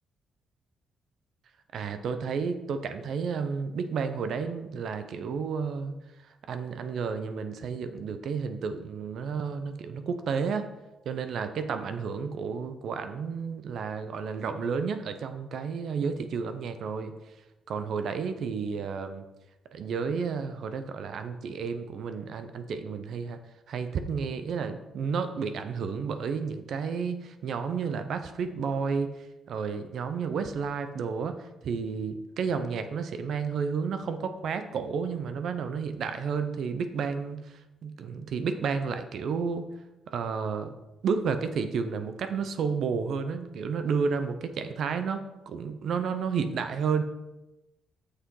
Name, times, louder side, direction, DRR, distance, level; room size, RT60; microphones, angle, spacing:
voice 1, 1.7-5.9 6.5-10.7 11.1-17.1 17.7-19.2 19.7-23.4 23.7-39.7 40.1-40.7 41.0-47.0, right 5 dB, 65° right, 9 dB, 0.6 m, -31 dB
6.4 x 5.9 x 4.7 m, 1.0 s
cardioid pair, 90°, 0 cm